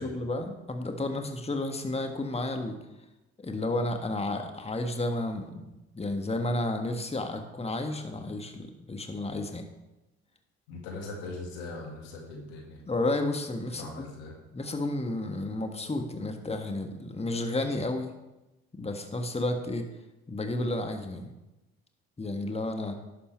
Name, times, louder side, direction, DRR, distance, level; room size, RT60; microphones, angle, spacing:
voice 1, 0.0-2.8 3.4-5.7 5.9-9.7 12.9-14.1 14.5-18.1 18.8-19.9 20.3-21.3 22.2-23.0, left 2 dB, 20° left, 5 dB, 1.4 m, -32 dB
voice 2, 10.7-12.9 13.7-14.3, left 2 dB, 80° left, 0 dB, 2.0 m, -40 dB
11.5 x 6.8 x 4.4 m, 0.99 s
hypercardioid pair, 50°, 30 cm